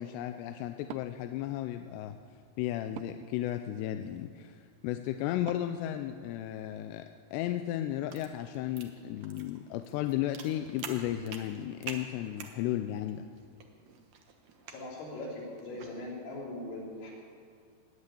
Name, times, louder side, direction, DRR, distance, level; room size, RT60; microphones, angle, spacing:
voice 1, 0.0-2.2 2.6-7.1 7.3-13.3, left 12 dB, 90° left, 8 dB, 2.7 m, -34 dB
Wood, 0.8-6.8, right 12 dB, 85° right, 2.6 m, -52 dB
sound 1, 7.6-16.0, right 6 dB, 70° right, 1.8 m, -48 dB
voice 2, 14.6-17.1, left 2 dB, 70° left, -3 dB, 5.2 m, -40 dB
19.5 x 8.1 x 8.4 m, 2.1 s
omnidirectional pair, 4.8 m